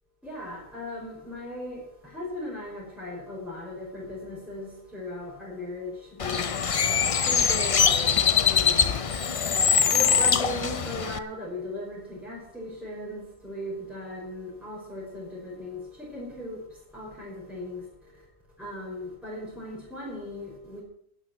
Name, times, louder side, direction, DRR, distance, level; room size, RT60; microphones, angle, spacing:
voice 1, 0.2-6.7 7.2-9.1 9.5-18.3 18.6-20.8, left 1 dB, ahead, 5.2 m, -38 dB
Bird, 6.2-11.2, left 6 dB, 45° left, 0.4 m, -23 dB
12.5 x 9.8 x 7.7 m
omnidirectional pair, 1.3 m